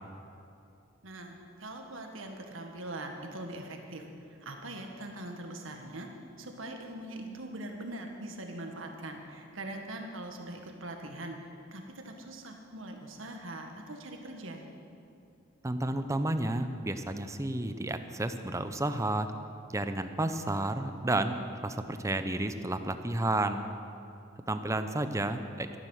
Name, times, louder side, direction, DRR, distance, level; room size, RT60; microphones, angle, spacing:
voice 1, 1.0-4.0 4.4-6.1 6.4-11.3 11.7-14.6, right 1 dB, 85° right, 3 dB, 1.7 m, -42 dB
voice 2, 15.6-19.3 19.7-23.7 24.5-25.7, right 1 dB, 15° right, 9 dB, 0.7 m, -31 dB
13.0 x 12.0 x 6.5 m, 2.7 s
head